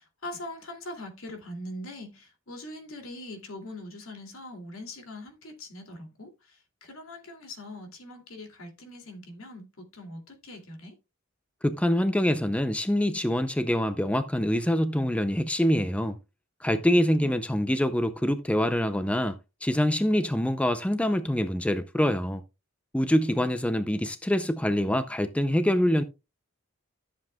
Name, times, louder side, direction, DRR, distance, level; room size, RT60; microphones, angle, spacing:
voice 1, 0.0-10.9 17.2-17.3, left 1 dB, 75° left, 2.5 m, -42 dB
voice 2, 11.6-16.2 16.6-22.4 22.9-26.0, equal, 5° left, 0.4 m, -25 dB
13.0 x 7.5 x 2.2 m
head